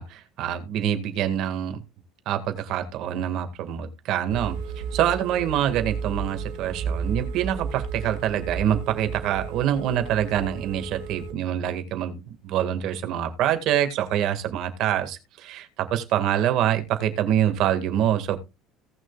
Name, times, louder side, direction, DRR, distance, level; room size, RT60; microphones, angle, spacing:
voice 1, 0.0-1.8 2.3-4.6 4.9-18.4, right 10 dB, 60° right, 8 dB, 2.0 m, -25 dB
Telephone, 4.3-11.3, right 6 dB, 85° right, 2.3 m, -33 dB
17.5 x 6.3 x 2.4 m, 0.26 s
supercardioid pair, 105°, 0 cm